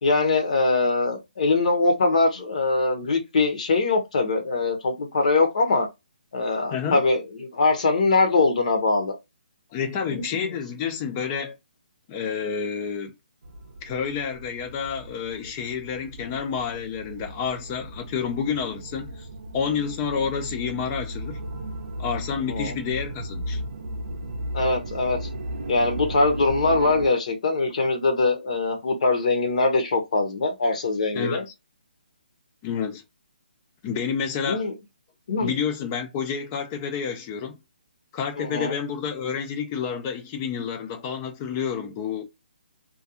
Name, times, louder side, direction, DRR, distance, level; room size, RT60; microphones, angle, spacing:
voice 1, 0.0-5.9 6.3-9.1 10.1-10.5 22.3-22.7 24.5-25.2 25.7-31.4 34.5-34.7 35.3-35.5 38.4-38.7, left 3 dB, 45° left, 0.7 m, -22 dB
voice 2, 6.7-7.0 9.7-11.6 12.1-13.1 13.8-19.3 19.5-21.4 22.0-23.6 31.1-31.5 32.6-33.0 33.8-34.6 35.4-37.6 38.1-42.2, left 7 dB, 15° left, 0.3 m, -29 dB
sound 1, 13.4-27.1, right 1 dB, 55° right, 0.5 m, -35 dB
2.4 x 2.2 x 2.7 m
hypercardioid pair, 170°, 5 cm